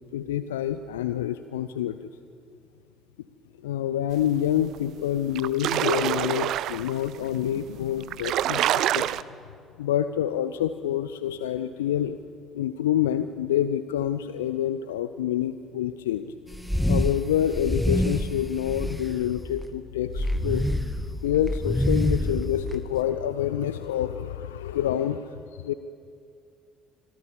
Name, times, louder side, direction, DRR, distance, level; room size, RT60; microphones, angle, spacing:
voice 1, 0.1-2.0 3.6-9.2 9.8-12.2 12.5-16.3 16.9-25.7, left 11 dB, 75° left, 12 dB, 0.5 m, -27 dB
sound 1, 4.7-4.8 5.2-7.0 7.7-7.8 8.0-9.2, right 12 dB, 55° right, 0.5 m, -26 dB
sound 2, 16.5-17.2 17.5-19.7 20.1-23.0, left 1 dB, 5° left, 1.2 m, -27 dB
26.0 x 16.0 x 7.2 m, 2.4 s
figure-of-eight pair, 50°, 0 cm